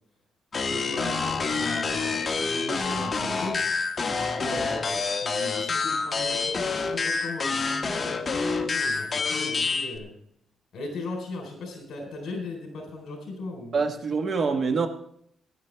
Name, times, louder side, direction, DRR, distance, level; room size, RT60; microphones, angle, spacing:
sound 1, 0.5-10.0, left 4 dB, 30° left, 1.3 m, -27 dB
voice 1, 0.7-3.7 4.4-10.1 10.7-13.8, left 2 dB, 70° left, 3 dB, 3.8 m, -38 dB
voice 2, 13.7-14.9, right 4 dB, 40° right, 5 dB, 1.3 m, -25 dB
17.5 x 10.5 x 3.4 m, 0.69 s
wide cardioid pair, 155°, 0 cm